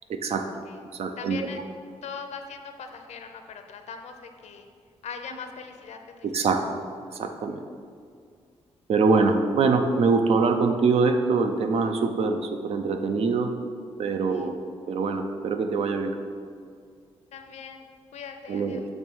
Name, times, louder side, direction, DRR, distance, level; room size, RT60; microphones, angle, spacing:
voice 1, 0.1-0.5 1.0-1.5 6.2-6.7 7.2-7.6 8.9-13.5 14.0-14.5 14.9-16.1 18.5-18.8, right 4 dB, 60° right, 7 dB, 0.5 m, -24 dB
voice 2, 1.2-1.6 2.0-4.7 5.0-6.3 14.3-14.5 17.3-17.8 18.1-18.9, left 6 dB, 75° left, 6 dB, 0.6 m, -40 dB
7.1 x 3.1 x 6.1 m, 2.2 s
wide cardioid pair, 140°, 12 cm